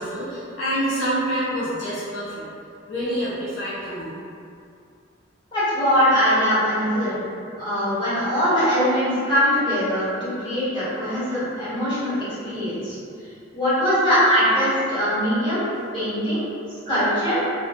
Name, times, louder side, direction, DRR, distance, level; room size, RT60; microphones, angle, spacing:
voice 1, 0.0-2.4 2.9-4.1, equal, 75° left, -10 dB, 0.6 m, -27 dB
voice 2, 5.5-7.2 7.6-13.0 13.5-15.7 15.9-16.4 16.9-17.5, equal, 25° left, -15 dB, 1.3 m, -21 dB
2.3 x 2.2 x 2.4 m, 2.4 s
head